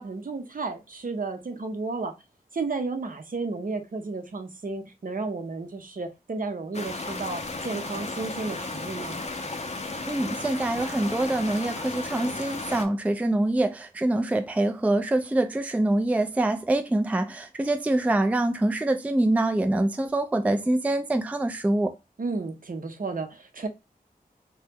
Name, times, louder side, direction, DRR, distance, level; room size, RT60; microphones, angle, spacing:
voice 1, 0.0-2.1 2.5-9.2 22.2-23.7, right 3 dB, 60° right, 0.6 m, -32 dB
sound 1, 6.7-12.9, left 3 dB, 45° left, 0.5 m, -34 dB
voice 2, 10.1-22.0, right 1 dB, 10° right, 0.3 m, -25 dB
2.8 x 2.2 x 3.4 m
wide cardioid pair, 60°, 16 cm